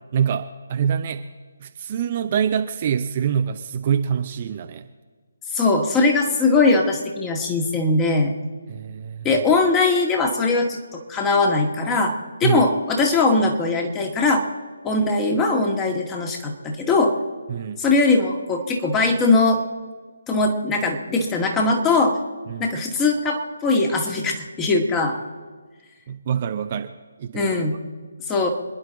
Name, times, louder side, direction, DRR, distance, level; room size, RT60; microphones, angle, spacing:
voice 1, 0.1-1.3 1.6-4.9 8.7-9.3 12.4-12.6 17.5-17.8 22.5-22.7 26.1-26.9 27.2-27.5, right 8 dB, 35° right, 7 dB, 0.8 m, -25 dB
voice 2, 5.5-8.3 9.2-12.1 12.4-14.4 14.8-17.1 17.8-19.6 20.3-22.2 22.6-25.2 27.3-27.8 28.3-28.5, left 3 dB, 15° left, 3 dB, 1.8 m, -20 dB
27.0 x 10.5 x 4.0 m, 1.4 s
figure-of-eight pair, 145°, 0 cm